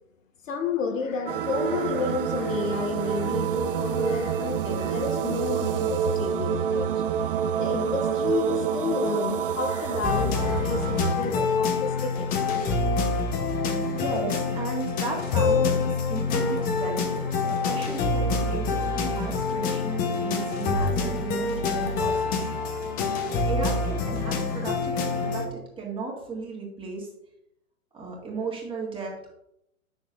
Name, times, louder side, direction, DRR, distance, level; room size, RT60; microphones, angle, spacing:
voice 1, 0.4-7.0 7.6-13.0, left 4 dB, 65° left, 0.9 m, -31 dB
sound 1, 1.3-11.2, right 8 dB, 45° right, 0.4 m, -27 dB
sound 2, 10.0-25.5, left 4 dB, 20° left, 0.9 m, -26 dB
voice 2, 13.9-22.5 23.1-27.1 27.9-29.3, right 3 dB, 10° right, 1.8 m, -35 dB
9.2 x 6.6 x 2.5 m
figure-of-eight pair, 115°, 43 cm